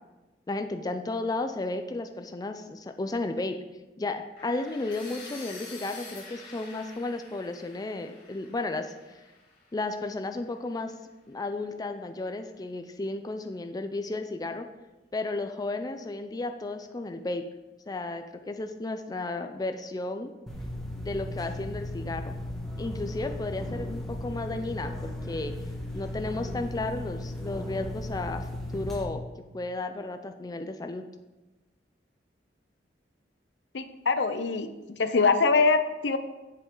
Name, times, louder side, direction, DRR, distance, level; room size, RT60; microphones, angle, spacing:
voice 1, 0.5-3.6 4.0-8.9 9.7-10.9 11.3-14.7 15.1-17.4 17.9-20.3 21.0-22.3 22.8-24.9 25.3-25.5 25.9-28.5 28.7-29.2 29.5-31.0, left 2 dB, 20° left, 7 dB, 0.4 m, -33 dB
sound 1, 4.4-10.3, left 3 dB, 55° left, 3.0 m, -47 dB
sound 2, 20.5-29.0, left 1 dB, ahead, 1.3 m, -36 dB
voice 2, 33.7-34.7 35.0-36.2, left 4 dB, 70° left, 10 dB, 0.6 m, -23 dB
7.8 x 7.4 x 3.8 m, 1.1 s
head